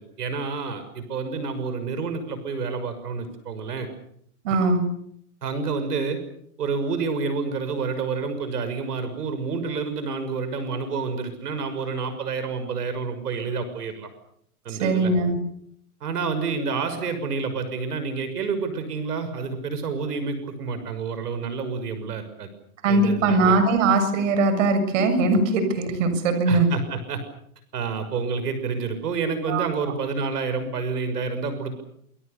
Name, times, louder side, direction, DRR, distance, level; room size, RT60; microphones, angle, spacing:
voice 1, 0.2-3.9 5.4-6.2 6.6-14.1 14.6-15.1 16.0-22.5 22.9-23.6 26.5-27.2 27.7-31.8, right 4 dB, 85° right, 9 dB, 6.4 m, -29 dB
voice 2, 4.4-4.8 14.7-15.4 22.8-26.7 29.5-29.7, right 3 dB, 55° right, 9 dB, 7.0 m, -21 dB
28.0 x 26.0 x 6.9 m, 0.71 s
hypercardioid pair, 150°, 46 cm